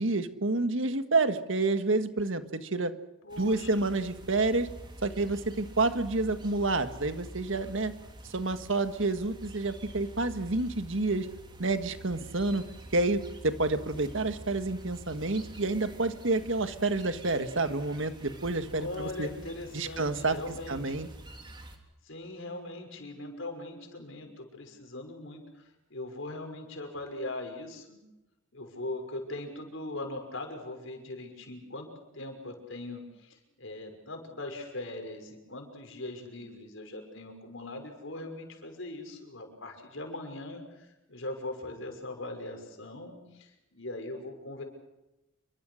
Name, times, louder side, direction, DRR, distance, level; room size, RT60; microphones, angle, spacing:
voice 1, 0.0-2.9 3.4-4.7 5.0-7.9 8.2-11.3 11.6-12.6 12.9-19.3 19.7-20.4 20.7-21.1, right 3 dB, 70° right, 9 dB, 1.7 m, -29 dB
voice 2, 3.2-3.9 18.7-21.0 22.0-28.0 28.5-31.9 32.1-44.6, left 2 dB, 70° left, 4 dB, 6.0 m, -40 dB
sound 1, 3.3-21.8, equal, 25° right, 3.2 m, -47 dB
28.5 x 23.5 x 6.4 m, 0.95 s
head